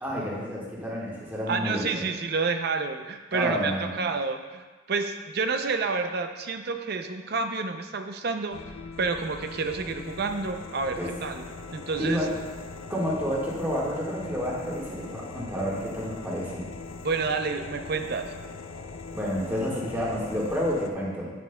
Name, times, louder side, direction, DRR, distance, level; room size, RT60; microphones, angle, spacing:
voice 1, 0.0-1.8 3.3-3.9 11.0-11.1 12.0-12.3 12.9-16.7 19.1-21.3, equal, 10° right, -6 dB, 1.6 m, -29 dB
voice 2, 1.5-8.6 9.0-11.4 11.7-12.2 17.0-18.3, right 4 dB, 50° right, 6 dB, 0.5 m, -29 dB
sound 1, 8.5-20.9, left 4 dB, 85° left, 0.5 m, -41 dB
9.4 x 7.5 x 2.2 m, 1.3 s
head